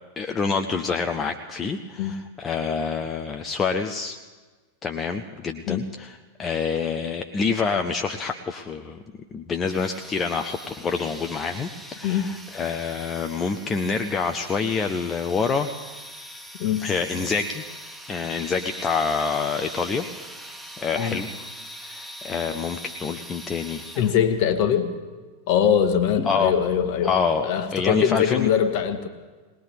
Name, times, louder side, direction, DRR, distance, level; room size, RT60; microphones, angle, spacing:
voice 1, 0.2-4.2 4.8-9.0 9.3-15.7 16.8-17.6 18.1-21.3 21.8-23.8 26.3-26.5 27.0-28.5, left 5 dB, 20° left, 5 dB, 0.6 m, -27 dB
sound 1, 9.7-24.4, equal, ahead, 1.1 m, -41 dB
voice 2, 24.0-24.9 25.5-27.1 27.4-29.1, left 8 dB, 45° left, 9 dB, 1.2 m, -22 dB
20.0 x 19.5 x 3.6 m, 1.3 s
figure-of-eight pair, 90°, 0 cm